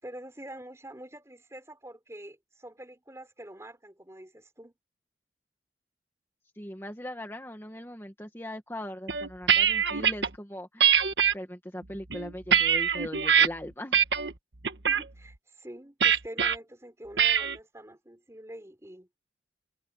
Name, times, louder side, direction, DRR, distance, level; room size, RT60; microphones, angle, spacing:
voice 1, 0.0-4.7 14.9-19.1, right 1 dB, 15° right, 3.6 m, -46 dB
voice 2, 6.6-10.9 11.3-14.0, left 1 dB, 15° left, 1.8 m, -40 dB
sound 1, 9.1-10.3 10.8-11.3 11.9-13.5 13.9-14.3 14.6-15.0 16.0-16.5 17.2-17.6, right 8 dB, 75° right, 1.4 m, -23 dB
head